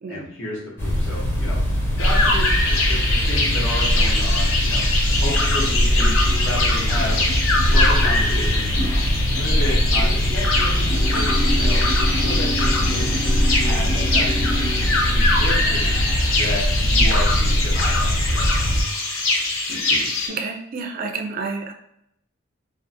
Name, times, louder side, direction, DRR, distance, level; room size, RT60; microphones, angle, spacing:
voice 1, 0.1-1.6 2.0-7.3 7.6-8.7 9.3-18.7 19.7-20.2, left 1 dB, 65° left, -4 dB, 1.0 m, -32 dB
sound 1, 0.8-18.8, equal, 10° left, 0.5 m, -21 dB
sound 2, 2.0-20.3, left 2 dB, 90° left, 0.6 m, -23 dB
sound 3, 5.1-16.4, equal, 45° left, 1.1 m, -33 dB
voice 2, 20.3-21.7, right 4 dB, 45° right, 4 dB, 0.3 m, -29 dB
2.6 x 2.4 x 2.6 m, 0.78 s
head